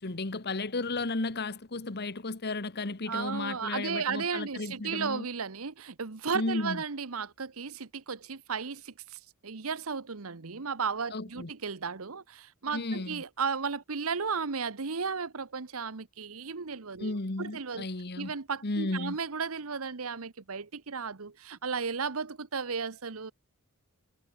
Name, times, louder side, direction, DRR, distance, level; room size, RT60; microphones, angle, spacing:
voice 1, 0.0-5.2 6.3-6.8 11.1-11.5 12.7-13.2 17.0-18.3 18.6-19.2, left 2 dB, 50° left, 1.4 m, -34 dB
voice 2, 3.1-17.9 18.2-23.3, right 5 dB, 80° right, 1.1 m, -34 dB
head